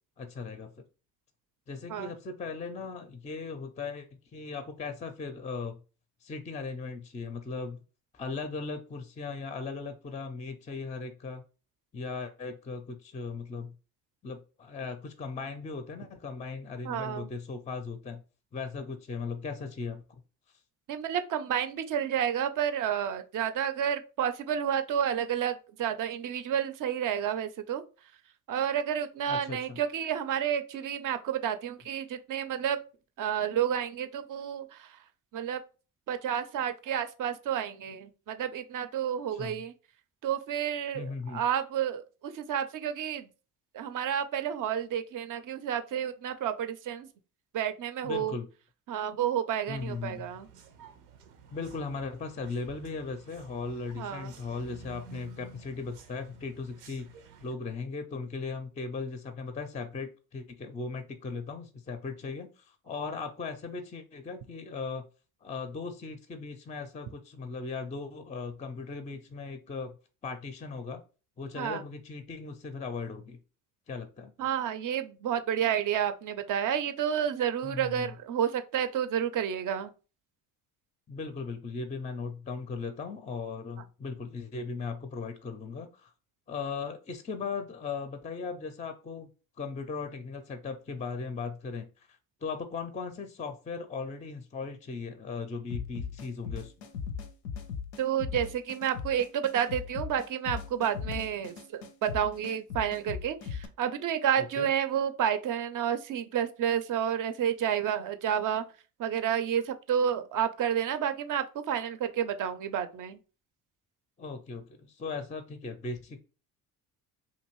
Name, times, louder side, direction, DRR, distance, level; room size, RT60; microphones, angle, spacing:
voice 1, 0.2-0.8 1.7-4.1 4.3-5.8 6.2-7.8 8.1-11.4 11.9-13.7 14.2-18.2 18.5-20.0 29.3-29.8 39.3-39.6 40.9-41.4 48.0-48.5 49.7-50.3 51.5-57.1 57.4-65.0 65.4-70.0 70.2-71.0 71.4-73.4 73.9-74.3 77.6-78.1 81.1-86.1 86.5-89.3 89.6-96.9 104.4-104.7 114.2-116.2, left 4 dB, 15° left, 0.4 m, -38 dB
voice 2, 16.8-17.3 20.9-27.8 28.5-32.8 33.2-34.9 35.3-35.6 36.1-39.7 40.2-42.0 42.3-43.3 43.7-47.1 47.5-48.3 48.9-50.5 54.0-54.3 71.6-71.8 74.4-79.9 98.0-108.6 109.0-113.2, right 9 dB, 45° right, 0.5 m, -30 dB
sound 1, 49.7-57.5, right 5 dB, 85° right, 0.6 m, -52 dB
sound 2, 95.7-103.7, left 6 dB, 90° left, 0.6 m, -38 dB
2.6 x 2.5 x 3.0 m
hypercardioid pair, 60°, 45 cm